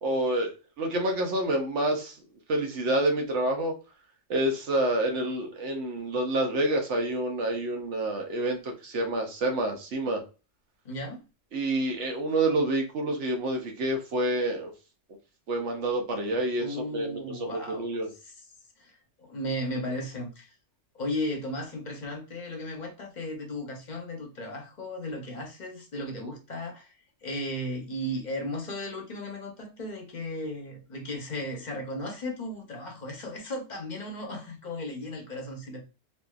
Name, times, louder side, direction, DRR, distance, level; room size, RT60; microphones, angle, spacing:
voice 1, 0.0-0.5 0.8-2.1 2.5-3.7 4.3-10.2 11.5-14.7 15.5-16.7 16.9-18.1, right 1 dB, 70° right, 1.0 m, -28 dB
voice 2, 10.8-11.2 16.6-18.5 18.8-20.5 20.9-26.9 27.2-35.8, left 1 dB, 45° left, 0.7 m, -35 dB
3.2 x 2.6 x 2.3 m
omnidirectional pair, 1.3 m